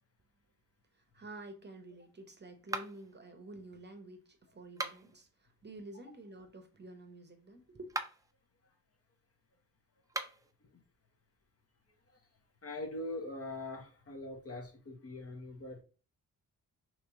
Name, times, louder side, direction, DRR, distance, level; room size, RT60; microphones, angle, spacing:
voice 1, 0.9-8.0, right 2 dB, 30° right, 0.8 m, -50 dB
sound 1, 2.7-3.2 4.6-5.2 7.8-8.3 10.0-10.5, right 2 dB, 10° right, 0.4 m, -40 dB
voice 2, 12.6-15.8, left 2 dB, 40° left, 0.9 m, -42 dB
3.0 x 2.9 x 3.5 m
cardioid pair, 60°, 37 cm